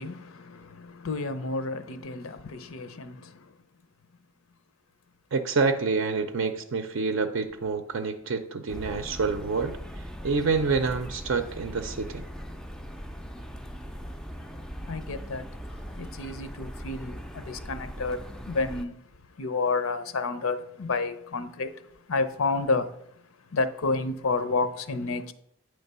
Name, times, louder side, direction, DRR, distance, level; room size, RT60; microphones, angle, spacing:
voice 1, 0.0-3.5 14.9-19.0 19.4-21.8 22.1-22.9 23.5-25.3, left 3 dB, 75° left, 0.6 m, -30 dB
voice 2, 5.3-9.8 10.2-12.2, right 4 dB, 65° right, 0.5 m, -27 dB
sound 1, 8.7-18.8, equal, 5° left, 0.3 m, -40 dB
8.9 x 3.3 x 6.7 m
head